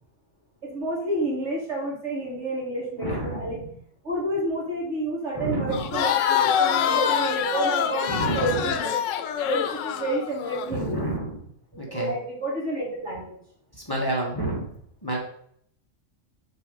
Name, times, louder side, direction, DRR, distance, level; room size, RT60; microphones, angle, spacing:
voice 1, 0.6-3.6 4.0-9.0 9.4-11.1 11.7-13.4, right 1 dB, 70° right, -4 dB, 2.4 m, -30 dB
voice 2, 3.0-3.5 5.4-5.8 8.1-8.6 10.7-11.4 11.8-12.1 13.9-14.7 15.0-15.2, right 1 dB, 20° left, -3 dB, 1.4 m, -28 dB
Crowd, 5.7-10.7, left 8 dB, 90° left, 0.9 m, -25 dB
6.5 x 3.4 x 5.3 m, 0.65 s
omnidirectional pair, 1.3 m